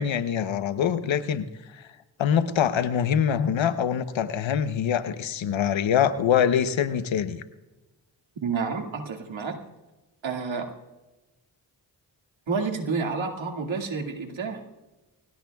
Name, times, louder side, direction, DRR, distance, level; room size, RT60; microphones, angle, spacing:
voice 1, 0.0-1.5 1.8-1.9 2.2-7.4, left 8 dB, 85° left, 12 dB, 0.9 m, -24 dB
voice 2, 8.4-9.6 10.2-10.7 12.5-14.6, right 4 dB, 85° right, 2 dB, 2.2 m, -29 dB
25.0 x 16.5 x 2.3 m, 1.1 s
cardioid pair, 40°, 45 cm